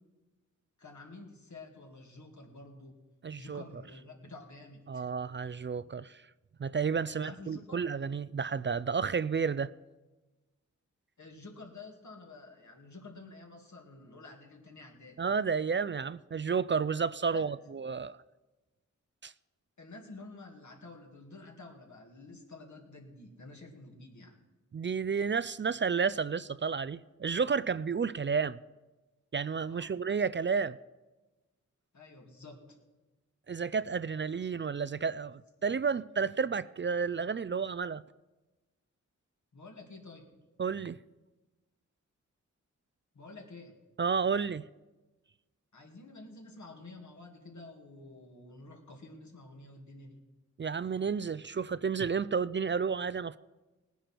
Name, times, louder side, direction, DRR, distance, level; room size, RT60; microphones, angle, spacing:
voice 1, 0.8-2.9 3.4-5.1 7.1-7.8 11.2-15.2 17.3-17.7 19.8-24.4 29.7-30.0 31.9-32.8 39.5-40.3 43.1-43.7 45.7-50.2, left 3 dB, 70° left, 2.5 m, -50 dB
voice 2, 3.2-3.6 4.9-6.2 6.6-9.7 15.2-18.2 19.2-19.3 24.7-28.6 29.3-30.8 33.5-38.0 40.6-41.0 44.0-44.6 50.6-53.4, right 5 dB, 40° right, 0.4 m, -31 dB
18.5 x 10.0 x 4.5 m
wide cardioid pair, 60°, 30 cm